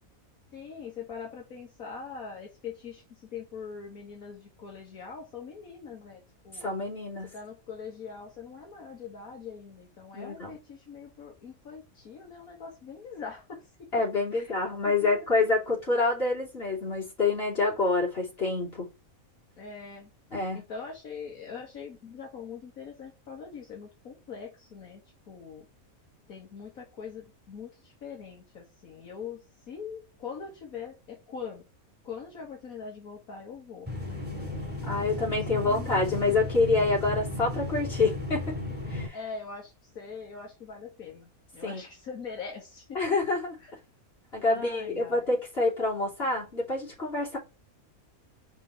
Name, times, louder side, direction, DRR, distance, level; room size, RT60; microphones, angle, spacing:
voice 1, 0.5-6.7 7.2-13.6 14.3-14.5 15.1-15.2 19.6-20.1 20.7-25.0 25.3-25.6 26.3-31.6 32.0-36.5 39.1-43.0 43.6-43.7 44.5-45.3, left 6 dB, 75° left, 2.0 m, -42 dB
voice 2, 6.6-7.3 10.1-10.6 13.9-18.9 20.3-20.6 34.8-38.6 38.9-39.2 41.6-41.8 43.0-43.6 44.3-47.4, left 3 dB, 45° left, 3.7 m, -27 dB
sound 1, 33.9-39.1, left 2 dB, 5° right, 2.6 m, -34 dB
5.4 x 4.1 x 5.9 m
omnidirectional pair, 1.5 m